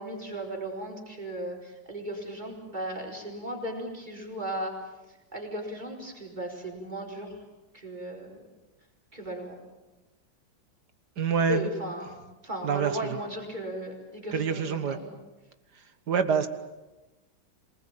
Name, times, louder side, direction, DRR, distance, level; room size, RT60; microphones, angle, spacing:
voice 1, 0.0-4.7 5.3-7.4 7.7-8.3 9.1-9.6 11.5-15.1, right 1 dB, 20° right, 0 dB, 4.8 m, -36 dB
voice 2, 11.2-11.7 12.6-13.2 14.3-15.0 16.1-16.5, right 6 dB, 60° right, 10 dB, 2.0 m, -26 dB
27.0 x 19.5 x 8.9 m, 1.1 s
omnidirectional pair, 2.1 m